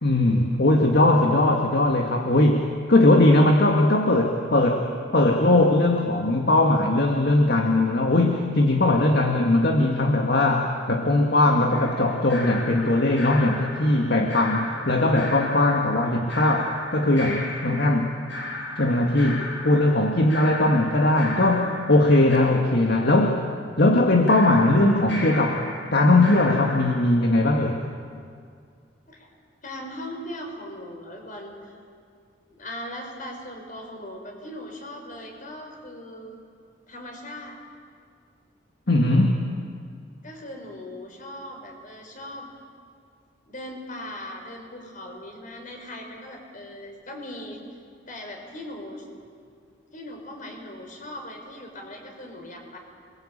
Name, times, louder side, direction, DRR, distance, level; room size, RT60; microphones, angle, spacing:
voice 1, 0.0-4.9 5.1-18.2 18.8-23.4 23.8-25.6 25.9-27.8 38.9-39.4, left 2 dB, 65° left, 2 dB, 1.9 m, -20 dB
sound 1, 11.7-22.4 24.3-27.0, left 1 dB, 85° left, 7.8 m, -36 dB
voice 2, 29.6-31.7 32.5-36.3 36.9-37.6 40.2-42.5 43.5-47.6 48.1-49.0 49.9-52.8, left 1 dB, 45° left, 2 dB, 5.6 m, -39 dB
28.5 x 22.5 x 8.7 m, 2.2 s
head